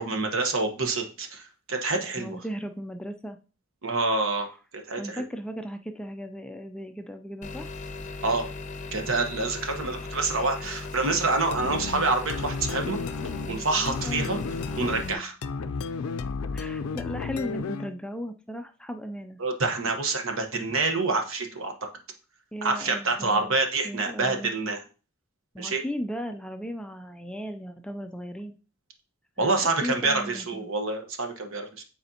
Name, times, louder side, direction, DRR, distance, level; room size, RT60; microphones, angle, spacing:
voice 1, 0.0-1.4 1.7-2.4 3.8-4.5 4.7-5.2 8.2-8.5 8.9-13.0 13.5-14.4 14.8-15.3 19.4-21.7 22.6-24.8 25.6-25.8 29.4-31.8, right 3 dB, 65° right, 5 dB, 1.0 m, -27 dB
voice 2, 2.2-3.4 5.0-7.7 13.8-14.5 16.5-19.4 22.5-23.6 23.8-24.5 25.5-28.6 29.4-30.7, equal, 5° left, 6 dB, 0.3 m, -36 dB
sound 1, 7.4-15.1, left 3 dB, 35° left, 0.7 m, -38 dB
sound 2, 11.5-18.0, left 4 dB, 75° left, 0.4 m, -33 dB
9.5 x 4.2 x 2.8 m, 0.36 s
head